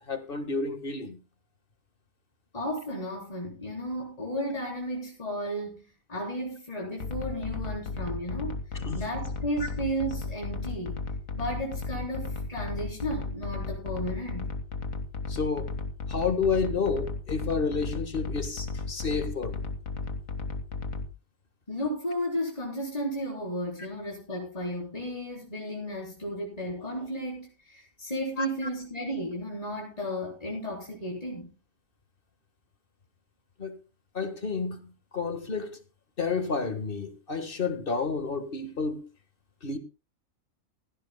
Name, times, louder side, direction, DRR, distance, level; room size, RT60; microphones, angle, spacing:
voice 1, 0.1-1.2 8.8-9.0 15.3-15.7 16.1-19.6 28.4-28.5 33.6-33.7 34.1-34.8 35.1-35.8 36.2-39.1 39.6-39.8, left 4 dB, 40° left, 1.6 m, -30 dB
voice 2, 2.5-5.8 6.1-8.6 8.9-11.0 11.3-14.5 21.7-31.5, equal, 25° left, 4.3 m, -34 dB
sound 1, 7.0-21.1, left 3 dB, 75° left, 2.1 m, -35 dB
16.5 x 16.0 x 2.2 m
omnidirectional pair, 1.4 m